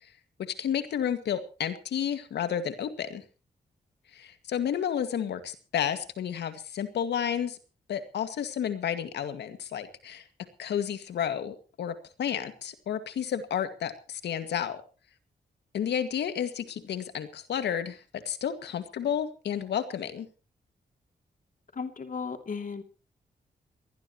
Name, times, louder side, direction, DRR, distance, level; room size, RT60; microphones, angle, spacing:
voice 1, 0.4-3.2 4.1-7.6 7.9-10.2 10.6-14.8 15.7-20.3, left 9 dB, 90° left, 9 dB, 2.1 m, -31 dB
voice 2, 21.8-22.8, left 5 dB, 50° left, 6 dB, 2.8 m, -35 dB
22.0 x 19.0 x 3.1 m, 0.36 s
cardioid pair, 60°, 17 cm